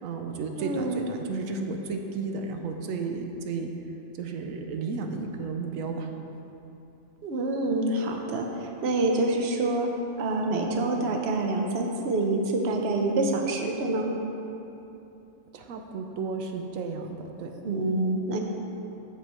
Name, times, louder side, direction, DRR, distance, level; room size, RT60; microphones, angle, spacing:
voice 1, 0.0-3.7 4.2-6.1 15.5-17.5, right 4 dB, 90° right, 4 dB, 1.1 m, -33 dB
voice 2, 0.6-1.1 7.2-14.1 17.6-18.4, right 2 dB, 55° right, 2 dB, 1.0 m, -27 dB
8.2 x 7.4 x 4.4 m, 2.9 s
omnidirectional pair, 1.4 m